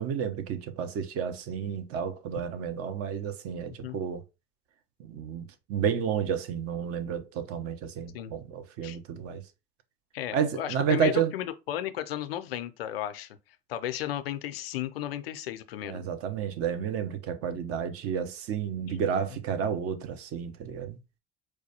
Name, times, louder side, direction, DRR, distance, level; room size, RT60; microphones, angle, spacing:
voice 1, 0.0-4.2 5.0-9.4 10.3-11.3 15.8-21.0, right 7 dB, 50° right, 0.7 m, -31 dB
voice 2, 10.1-13.4 13.7-16.0, left 12 dB, 80° left, 0.5 m, -34 dB
4.6 x 2.2 x 2.8 m
hypercardioid pair, 65°, 29 cm